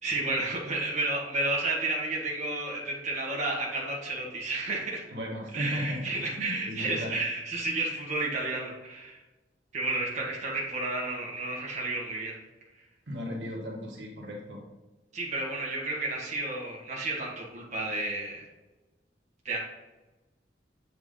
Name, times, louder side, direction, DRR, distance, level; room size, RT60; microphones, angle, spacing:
voice 1, 0.0-5.0 5.5-9.2 9.7-12.4 15.1-18.4 19.4-19.6, right 2 dB, 40° right, -3 dB, 1.7 m, -31 dB
voice 2, 5.1-7.1 13.1-14.6, left 1 dB, 85° right, -2 dB, 1.7 m, -36 dB
8.0 x 4.8 x 3.8 m, 1.1 s
head